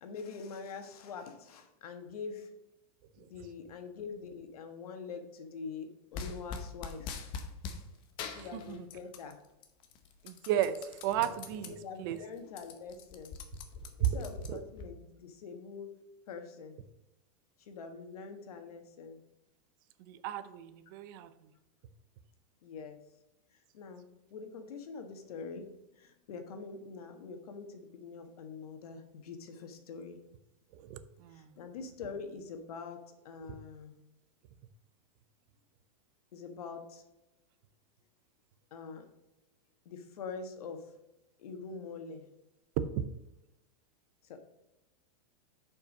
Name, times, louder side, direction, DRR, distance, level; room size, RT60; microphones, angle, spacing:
voice 1, 0.0-2.5 3.2-7.2 8.2-9.4 11.2-11.3 11.7-13.4 14.0-15.9 16.3-16.8 17.6-19.2 22.6-23.0 23.5-25.7 25.9-30.2 31.3-33.9 36.3-37.0 38.7-39.0 39.8-40.9 41.4-42.3 44.2-44.4, left 5 dB, 85° left, 6 dB, 1.5 m, -44 dB
sound 1, 6.1-7.8 8.2-9.3 9.6-11.7 12.1-12.2 12.4-14.9, left 6 dB, 25° left, 0.8 m, -42 dB
voice 2, 8.3-8.9 10.2-12.2 14.0-14.2 14.5-14.6 20.0-21.3 30.7-31.5 33.5-33.6 42.9-43.0, right 11 dB, 35° right, 12 dB, 0.5 m, -34 dB
7.0 x 5.4 x 5.1 m, 0.93 s
supercardioid pair, 170°, 19 cm